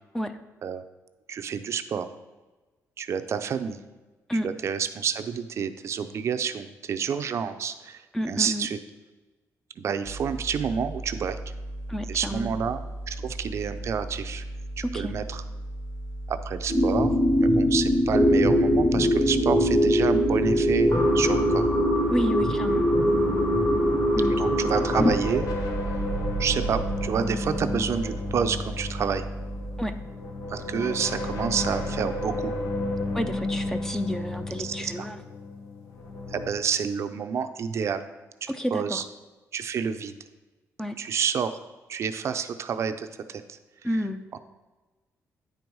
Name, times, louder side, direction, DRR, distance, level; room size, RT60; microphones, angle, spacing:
voice 1, 1.3-2.1 3.0-3.8 4.3-8.8 9.8-11.4 12.1-12.8 13.1-14.4 14.8-15.4 16.3-17.1 17.4-21.7 24.3-25.5 26.4-29.3 30.5-32.5 34.6-35.1 36.3-38.0 38.4-39.0 39.5-40.1 41.0-41.6 41.9-43.6 44.3-44.4, right 7 dB, 50° right, 9 dB, 0.5 m, -29 dB
voice 2, 8.1-8.7 11.9-12.5 14.8-15.1 22.1-22.9 24.2-24.3 29.8-29.9 33.1-35.2 38.5-39.1 40.8-41.0 43.8-44.2, equal, 5° left, 8 dB, 0.5 m, -30 dB
sound 1, 10.0-29.9, right 1 dB, 65° left, 2.0 m, -37 dB
sound 2, 16.7-25.1, equal, 30° left, 1.8 m, -22 dB
sound 3, 23.0-36.5, left 1 dB, 90° left, 1.4 m, -32 dB
9.4 x 4.6 x 5.3 m, 1.2 s
cardioid pair, 140°, 6 cm